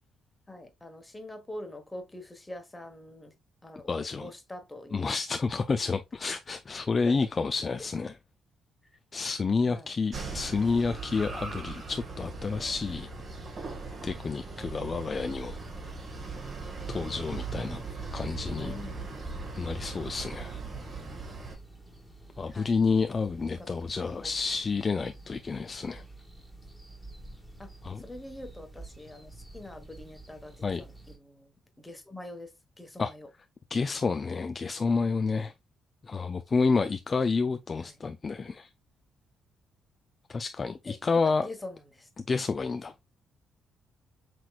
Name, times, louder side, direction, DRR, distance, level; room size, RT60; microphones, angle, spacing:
voice 1, 0.5-3.3 3.6-5.1 7.0-7.2 9.7-9.9 14.0-14.2 18.0-19.2 22.5-23.2 23.6-23.7 24.0-24.3 27.6-27.7 28.0-33.3 37.8-37.9 40.8-42.1, left 1 dB, 15° left, 1.2 m, -45 dB
voice 2, 3.9-4.3 4.9-8.1 9.1-13.1 14.0-15.6 16.9-17.8 18.1-18.7 19.5-20.6 22.4-26.0 27.8-28.0 30.6-30.8 33.0-33.1 33.7-35.5 36.0-38.7 40.3-41.5 42.2-42.9, left 4 dB, 35° left, 0.3 m, -29 dB
sound 1, 10.1-21.6, right 4 dB, 40° right, 1.5 m, -39 dB
sound 2, 15.1-31.2, right 2 dB, ahead, 1.6 m, -48 dB
5.9 x 3.1 x 2.3 m
cardioid pair, 90°, 0 cm